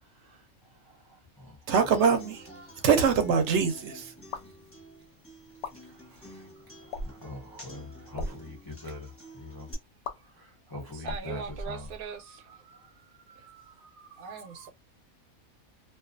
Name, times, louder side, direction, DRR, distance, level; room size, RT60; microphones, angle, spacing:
voice 1, 0.1-1.7 4.4-4.6 5.7-9.7 10.1-11.9 13.8-13.9, left 2 dB, 35° left, 0.3 m, -44 dB
Human voice / Acoustic guitar, 1.7-9.7, right 1 dB, 10° left, 0.8 m, -50 dB
voice 2, 1.7-2.5 2.8-4.1 12.7-14.7, right 6 dB, 65° right, 0.8 m, -26 dB
sound 1, 2.9-3.2 4.2-4.5 5.5-5.7 6.9-7.3 8.0-8.3 10.0-10.1 11.0-12.2, left 2 dB, 65° left, 0.7 m, -38 dB
voice 3, 10.9-12.6 14.2-14.7, right 6 dB, 85° right, 1.1 m, -40 dB
2.4 x 2.3 x 2.4 m
omnidirectional pair, 1.5 m